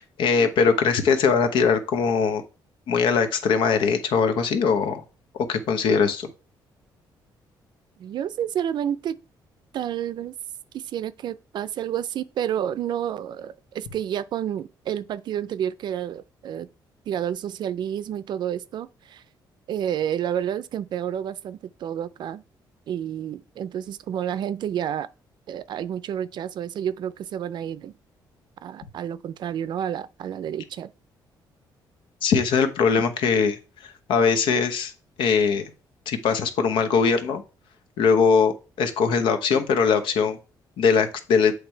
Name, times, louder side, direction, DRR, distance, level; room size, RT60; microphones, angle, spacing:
voice 1, 0.0-2.4 2.9-5.0 5.3-6.3 32.2-33.6 33.8-34.9 35.2-35.6 36.1-37.4 38.0-40.4 40.8-41.5, left 5 dB, 80° left, 1.0 m, -21 dB
voice 2, 8.0-9.2 9.7-10.3 10.7-16.7 17.1-19.2 19.7-22.4 22.9-25.1 25.5-27.9 28.6-30.9, right 10 dB, 60° right, 0.5 m, -30 dB
8.1 x 3.3 x 4.5 m
cardioid pair, 125°, 8 cm